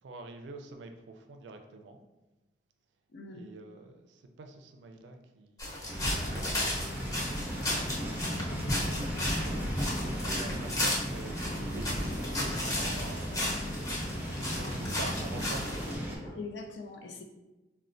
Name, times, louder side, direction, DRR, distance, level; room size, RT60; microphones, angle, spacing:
voice 1, 0.0-2.0 3.3-7.2 7.9-14.0 14.3-16.1, right 3 dB, 90° right, 5 dB, 0.4 m, -47 dB
voice 2, 3.1-3.4 6.1-6.2 16.3-17.2, left 3 dB, 85° left, 3 dB, 0.5 m, -42 dB
sound 1, 5.6-15.9, left 1 dB, 20° left, 0.7 m, -34 dB
sound 2, 5.9-16.2, equal, 10° right, 0.5 m, -36 dB
sound 3, 9.1-10.9 11.4-12.6 13.0-14.0 14.5-14.6 15.3-16.4, equal, 65° left, 1.0 m, -48 dB
4.1 x 2.1 x 2.5 m, 1.1 s
head